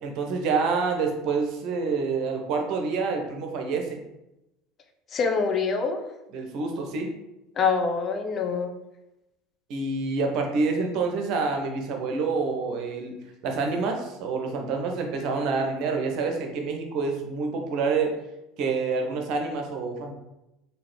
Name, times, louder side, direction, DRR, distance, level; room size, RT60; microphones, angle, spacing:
voice 1, 0.0-4.0 6.3-7.1 9.7-13.2 13.4-18.1 18.6-20.1, right 4 dB, 55° right, 3 dB, 0.6 m, -27 dB
voice 2, 5.1-6.1 7.6-8.7, left 5 dB, 35° left, 6 dB, 0.4 m, -25 dB
3.7 x 2.3 x 3.2 m, 0.92 s
figure-of-eight pair, 70°, 0 cm